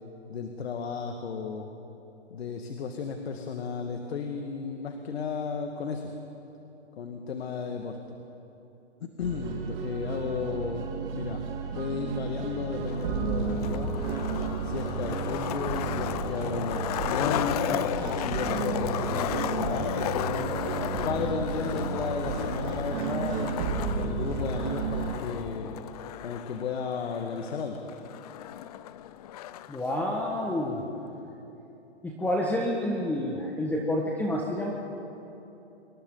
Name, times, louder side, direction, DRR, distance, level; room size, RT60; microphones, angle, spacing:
voice 1, 0.3-1.7 2.3-6.1 7.0-8.0 9.0-10.9 11.1-11.4 11.7-13.9 14.6-17.7 18.1-20.6 21.0-25.8 26.2-27.8, left 5 dB, 60° left, 4 dB, 1.9 m, -34 dB
sound 1, 9.2-25.2, right 5 dB, 30° right, 4.0 m, -32 dB
Skateboard, 12.8-29.8, left 12 dB, 35° left, 0.6 m, -34 dB
voice 2, 29.7-30.9 32.0-34.7, left 1 dB, 5° left, -2 dB, 1.6 m, -29 dB
28.0 x 26.0 x 4.0 m, 2.9 s
hypercardioid pair, 135°, 34 cm